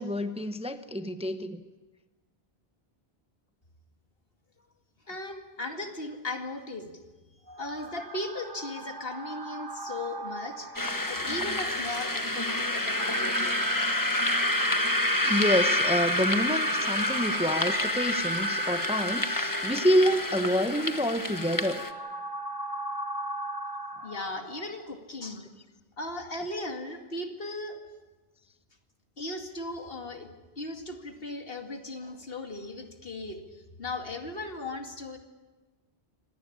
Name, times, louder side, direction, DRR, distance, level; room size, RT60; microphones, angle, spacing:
voice 1, 0.0-1.6 15.2-21.8, equal, 5° right, 9 dB, 0.9 m, -27 dB
voice 2, 5.1-6.9 7.6-10.7 11.1-13.7 24.0-25.5 26.0-27.8 29.2-30.3 30.6-33.4 33.8-35.2, left 2 dB, 65° left, 4 dB, 2.5 m, -37 dB
sound 1, 7.5-24.9, right 2 dB, 20° right, 1.2 m, -35 dB
sound 2, 10.8-21.9, left 2 dB, 20° left, 1.2 m, -29 dB
25.0 x 19.0 x 10.0 m, 1.2 s
omnidirectional pair, 1.1 m